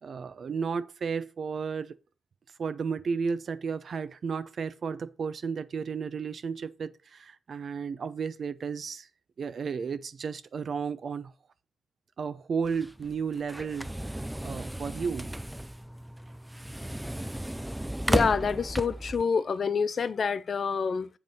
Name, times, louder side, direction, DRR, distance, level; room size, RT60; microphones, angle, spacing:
voice 1, 0.0-2.0 2.6-9.1 9.4-11.3 12.2-15.3, right 5 dB, 60° right, 0.6 m, -33 dB
sound 1, 12.6-19.2, right 1 dB, 5° right, 0.3 m, -34 dB
voice 2, 18.1-21.1, left 5 dB, 55° left, 0.5 m, -27 dB
7.8 x 4.6 x 5.3 m
cardioid pair, 80°, 0 cm